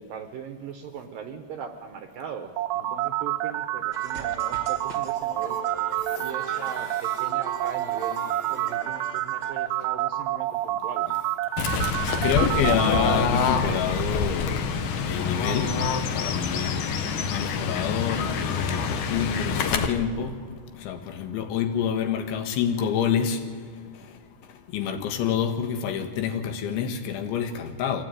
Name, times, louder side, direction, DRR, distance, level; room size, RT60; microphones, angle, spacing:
voice 1, 0.0-5.6 6.1-11.1, right 7 dB, 75° right, 6 dB, 2.2 m, -39 dB
sound 1, 2.6-13.2, right 14 dB, 90° right, 3.1 m, -28 dB
sound 2, 3.9-9.5, right 3 dB, 50° right, 1.2 m, -40 dB
voice 2, 6.5-6.8 12.2-14.7 15.1-15.8 16.1-16.8 17.3-23.5 24.0-24.2 24.7-28.0, left 8 dB, 85° left, 5 dB, 4.0 m, -28 dB
Fowl / Bird, 11.6-19.9, left 5 dB, 70° left, 1.9 m, -26 dB
24.5 x 17.0 x 9.2 m, 2.2 s
omnidirectional pair, 5.2 m